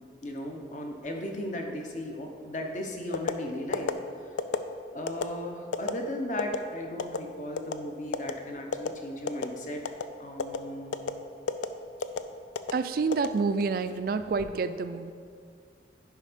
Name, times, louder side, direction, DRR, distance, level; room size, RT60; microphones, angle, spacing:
voice 1, 0.2-3.9 4.9-9.8 10.2-11.0, left 1 dB, 40° left, 2 dB, 0.8 m, -36 dB
sound 1, 3.1-3.4 3.7-3.9 4.4-4.6 5.1-5.2 5.7-5.9 6.4-6.6 7.0-7.2 7.6-7.8 8.1-8.3 8.7-8.9 9.3-9.5 9.9-10.1 10.4-10.6 10.9-11.1 11.5-11.7 12.0-12.2 12.6-12.7 13.1-13.8 14.2-14.5, left 5 dB, 80° left, 0.4 m, -29 dB
voice 2, 12.7-15.1, right 4 dB, 50° right, 11 dB, 0.3 m, -28 dB
10.5 x 3.5 x 5.1 m, 2.2 s
head